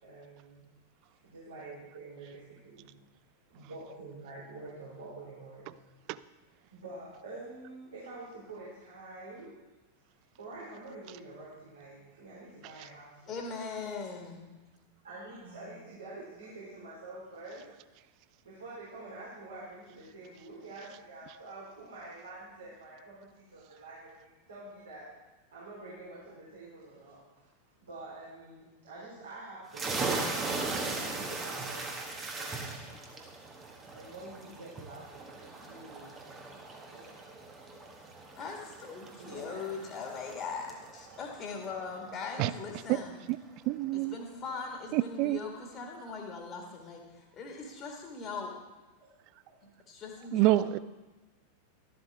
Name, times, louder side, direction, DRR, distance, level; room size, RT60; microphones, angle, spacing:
voice 1, 0.0-0.6 1.2-2.9 3.5-5.8 6.7-9.5 10.4-13.3 13.8-13.9 15.0-17.6 18.4-25.1 25.5-27.5 27.8-33.1 33.9-36.6 36.9-37.2 39.2-39.8 40.6-40.7 41.0-41.2 49.4-49.5, right 2 dB, 70° right, -7 dB, 4.0 m, -47 dB
voice 2, 13.3-14.4 32.3-32.4 38.4-43.2 43.9-48.5 49.9-50.6, left 5 dB, 30° left, 1 dB, 2.0 m, -40 dB
sound 1, 29.7-43.1, right 3 dB, 20° right, 1.6 m, -39 dB
voice 3, 43.7-44.2 44.9-45.4 50.3-50.8, right 16 dB, 40° right, 17 dB, 0.4 m, -26 dB
12.5 x 12.0 x 3.6 m, 1.1 s
figure-of-eight pair, 90°, 0 cm